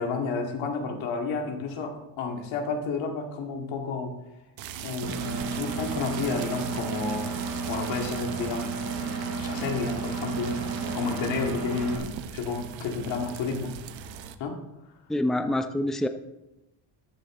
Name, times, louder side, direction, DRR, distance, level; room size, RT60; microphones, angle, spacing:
voice 1, 0.0-4.1 4.8-7.3 7.6-13.7 14.4-14.6, left 4 dB, 90° left, 2 dB, 2.1 m, -31 dB
sound 1, 4.6-14.4, right 7 dB, 80° right, 1.0 m, -40 dB
Engine, 5.0-12.0, right 4 dB, 60° right, 4.9 m, -32 dB
voice 2, 15.1-16.1, left 1 dB, ahead, 8 dB, 0.6 m, -26 dB
14.0 x 9.8 x 3.7 m, 0.94 s
cardioid pair, 110°, 45 cm